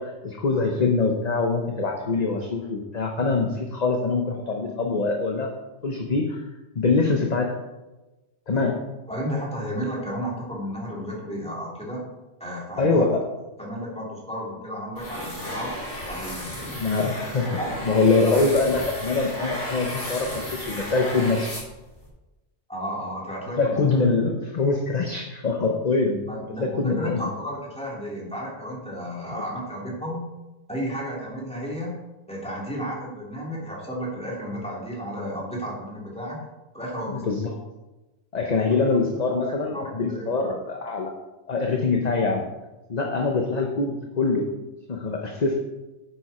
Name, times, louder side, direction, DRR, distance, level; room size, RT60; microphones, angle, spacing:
voice 1, 0.0-5.5 5.8-6.5 6.7-7.6 8.5-8.8 12.8-13.2 16.4-16.5 16.8-17.5 17.8-21.5 23.5-26.2 26.6-27.2 29.3-29.4 37.1-37.5 38.3-41.1 41.5-42.5 42.9-44.5 44.9-45.6, left 3 dB, 40° left, 2 dB, 1.0 m, -24 dB
voice 2, 9.1-12.0 12.4-13.1 13.6-15.7 16.1-16.5 17.0-17.2 17.6-17.8 22.7-23.8 26.3-30.3 30.7-32.0 32.3-36.4 36.7-37.4 38.4-38.6 39.7-40.6 43.2-43.3, equal, 5° left, -5 dB, 3.3 m, -33 dB
sound 1, 15.0-22.1, equal, 75° left, 4.2 m, -34 dB
9.9 x 7.9 x 4.3 m, 1.1 s
omnidirectional pair, 1.2 m